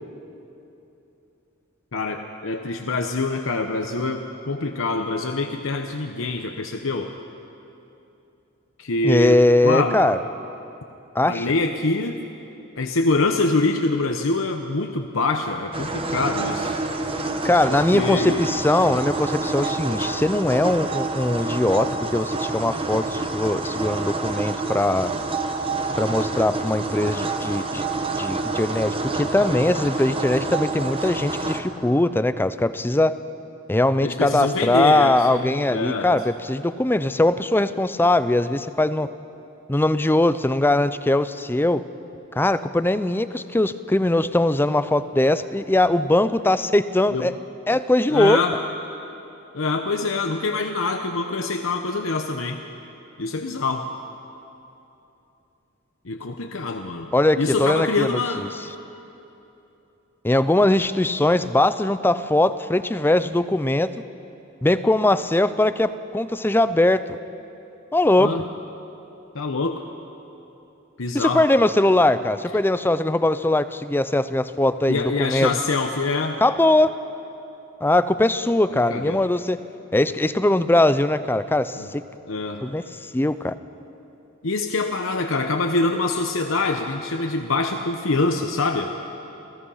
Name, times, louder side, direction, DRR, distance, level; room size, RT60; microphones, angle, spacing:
voice 1, 1.9-7.1 8.8-10.0 11.2-12.2 12.8-16.8 17.7-18.5 27.0-27.1 34.0-36.2 47.1-47.3 48.1-48.5 49.5-52.6 53.2-53.9 56.0-57.1 57.4-58.5 68.2-68.4 69.3-69.8 71.0-71.4 74.9-76.4 78.9-79.2 81.7-81.9 82.3-82.7 84.4-88.9, left 3 dB, 75° left, 4 dB, 0.9 m, -25 dB
voice 2, 9.0-10.2 11.1-11.5 17.4-25.1 26.0-27.8 28.2-33.2 33.7-39.1 39.7-41.8 42.4-47.3 47.7-48.4 57.1-58.1 58.4-58.5 60.2-63.9 64.6-67.0 67.9-68.4 71.1-75.6 76.4-77.0 77.8-79.6 79.9-82.0 82.6-82.8 83.1-83.5, left 1 dB, 10° left, 13 dB, 0.5 m, -20 dB
sound 1, 15.7-31.6, right 3 dB, 25° right, 1.2 m, -28 dB
28.0 x 16.5 x 5.7 m, 2.9 s
head